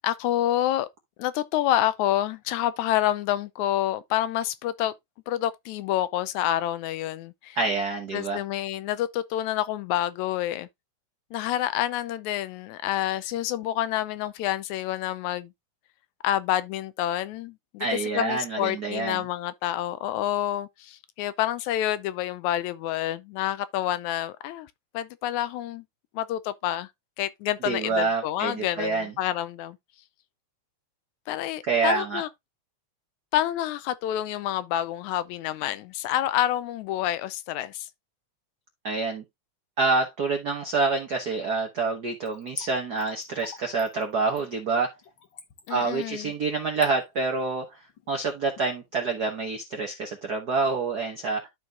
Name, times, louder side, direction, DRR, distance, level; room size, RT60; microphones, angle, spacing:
voice 1, 0.0-0.9 1.2-4.9 5.3-7.6 8.1-10.7 11.3-15.5 16.2-25.8 26.1-26.9 27.2-29.8 31.3-32.3 33.3-37.9 45.7-46.3, left 13 dB, 80° left, 1.9 m, -28 dB
voice 2, 7.6-8.4 17.8-19.2 27.6-29.1 31.7-32.2 38.8-39.2 39.8-44.9 45.7-47.8 48.1-51.5, right 4 dB, 70° right, 0.9 m, -27 dB
Splash splatter / Trickle dribble, 42.2-48.7 49.0-49.1, left 7 dB, 55° left, 1.5 m, -45 dB
12.5 x 4.4 x 2.4 m
omnidirectional pair, 3.4 m